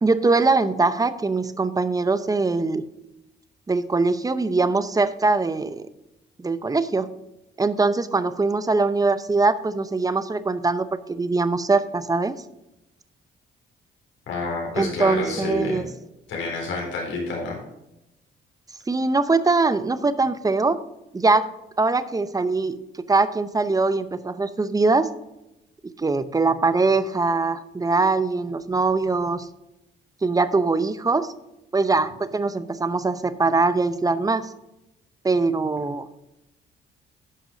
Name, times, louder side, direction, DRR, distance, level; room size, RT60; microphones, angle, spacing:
voice 1, 0.0-2.8 3.7-5.8 6.4-7.1 7.6-12.4 14.7-15.8 18.9-20.8 21.1-21.5 21.8-22.7 23.1-25.1 26.0-29.5 30.2-31.3 31.7-34.5 35.2-36.1, right 3 dB, 20° right, 13 dB, 0.7 m, -22 dB
voice 2, 14.3-15.8 16.3-17.6, left 2 dB, 75° left, -2 dB, 4.0 m, -28 dB
10.5 x 6.0 x 5.2 m, 0.91 s
cardioid pair, 90°, 20 cm